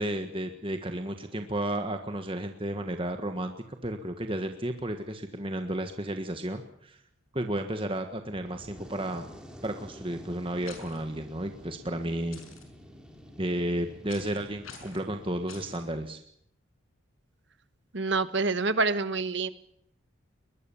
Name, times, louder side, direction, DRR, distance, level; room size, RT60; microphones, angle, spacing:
voice 1, 0.0-3.5 3.8-7.0 7.3-9.2 9.6-12.4 13.4-16.2, right 1 dB, 25° right, 6 dB, 1.5 m, -32 dB
Fire, 8.2-15.9, equal, 5° right, 3.3 m, -49 dB
sound 1, 10.6-11.0 12.3-12.6 14.1-14.4 14.6-15.0 15.5-15.8, left 6 dB, 90° left, 5.7 m, -46 dB
voice 2, 17.9-19.5, right 3 dB, 60° right, 13 dB, 1.3 m, -27 dB
22.0 x 21.5 x 7.1 m, 0.69 s
head